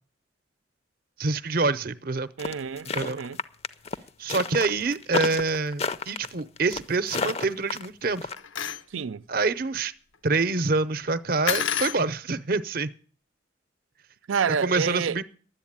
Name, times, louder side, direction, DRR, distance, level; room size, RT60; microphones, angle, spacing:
voice 1, 1.2-2.3 2.9-3.2 4.2-8.3 9.3-9.9 10.2-12.9 14.6-15.2, right 3 dB, 50° right, 0.7 m, -26 dB
sound 1, 2.4-8.4, left 4 dB, 30° left, 0.6 m, -31 dB
voice 2, 2.4-3.4 8.9-9.2 14.3-15.2, right 6 dB, 90° right, 0.5 m, -28 dB
sound 2, 8.4-8.8 11.5-12.0, left 8 dB, 75° left, 0.7 m, -28 dB
11.5 x 8.2 x 8.7 m
head